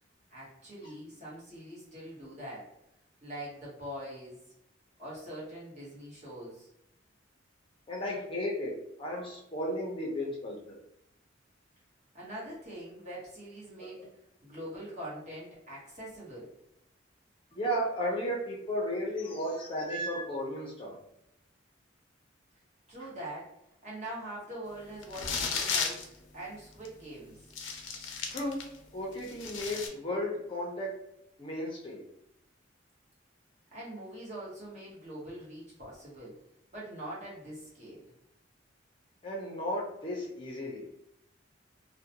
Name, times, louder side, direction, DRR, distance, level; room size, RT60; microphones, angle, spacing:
voice 1, 0.3-2.7 3.2-4.4 5.0-6.7 12.1-16.5 22.9-23.5 23.8-26.1 26.3-27.4 33.7-36.4 36.7-38.1, right 1 dB, 35° right, -7 dB, 1.1 m, -43 dB
voice 2, 7.9-10.8 13.8-13.9 17.5-21.0 23.0-23.1 28.3-28.6 28.9-31.0 31.4-32.1 39.2-40.9, equal, 25° left, -3 dB, 0.5 m, -34 dB
sound 1, 25.0-26.1 26.8-26.9 27.5-28.8 29.1-29.9, left 5 dB, 85° left, 0.5 m, -34 dB
2.4 x 2.1 x 2.8 m, 0.81 s
head